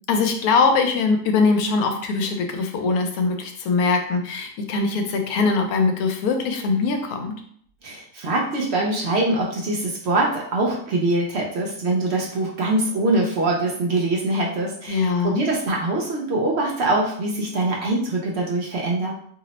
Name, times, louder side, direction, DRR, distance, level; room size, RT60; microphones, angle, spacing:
voice 1, 0.1-7.3 14.9-15.4, left 4 dB, 85° left, 5 dB, 1.1 m, -22 dB
voice 2, 7.8-19.1, right 2 dB, 60° right, -2 dB, 0.7 m, -23 dB
2.7 x 2.0 x 4.0 m, 0.63 s
omnidirectional pair, 1.5 m